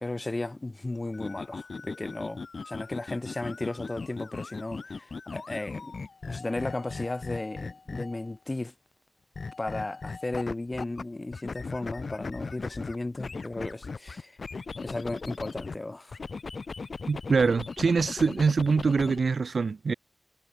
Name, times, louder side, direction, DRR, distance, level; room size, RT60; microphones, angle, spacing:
voice 1, 0.0-6.0 6.2-8.7 9.6-14.4 14.8-16.2, left 2 dB, 35° left, 2.1 m, -35 dB
sound 1, 1.1-8.3 9.3-11.0 11.3-15.8 16.1-19.2, left 4 dB, 75° left, 5.4 m, -38 dB
voice 2, 17.1-19.9, right 4 dB, 85° right, 0.3 m, -24 dB
wide cardioid pair, 65°, 0 cm